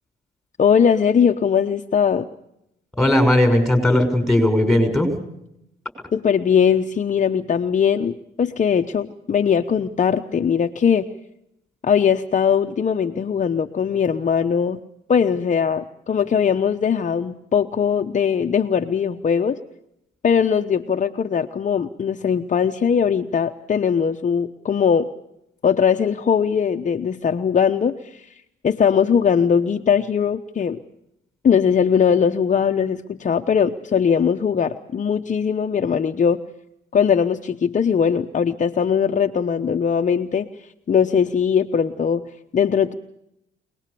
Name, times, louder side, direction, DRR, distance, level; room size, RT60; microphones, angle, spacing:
voice 1, 0.6-2.3 6.1-11.1 11.8-14.8 15.1-19.6 20.2-25.1 25.6-28.3 28.6-30.8 31.4-36.4 36.9-40.5 40.9-42.9, left 7 dB, 40° left, 5 dB, 1.0 m, -20 dB
voice 2, 3.0-5.2, left 1 dB, ahead, 6 dB, 6.4 m, -17 dB
25.5 x 19.5 x 6.9 m, 0.79 s
cardioid pair, 90°, 20 cm